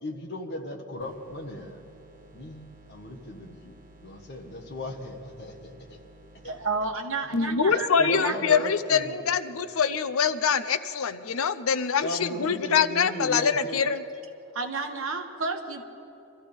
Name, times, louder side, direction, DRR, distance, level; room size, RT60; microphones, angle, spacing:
voice 1, 0.0-1.8 2.3-6.0 6.4-6.5 7.7-9.2 12.0-13.8, left 1 dB, 50° left, 2 dB, 1.6 m, -37 dB
sound 1, 1.0-6.7, right 1 dB, 35° right, 1.9 m, -54 dB
voice 2, 6.4-8.6 14.5-15.8, right 3 dB, 65° right, 4 dB, 1.4 m, -31 dB
voice 3, 7.3-14.0, left 6 dB, 75° left, 11 dB, 0.6 m, -24 dB
24.5 x 14.5 x 3.6 m, 3.0 s
head